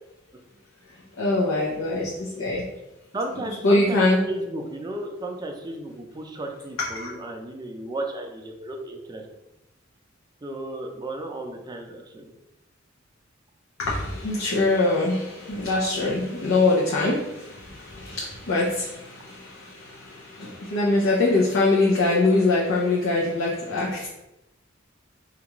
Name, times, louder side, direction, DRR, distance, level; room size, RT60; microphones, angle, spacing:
voice 1, 1.2-2.6 3.6-4.2 6.8-7.1 13.8-24.1, left 2 dB, 80° left, -4 dB, 0.6 m, -23 dB
voice 2, 3.1-9.2 10.4-12.3, right 1 dB, 20° right, 3 dB, 0.4 m, -34 dB
4.5 x 2.4 x 2.9 m, 0.93 s
head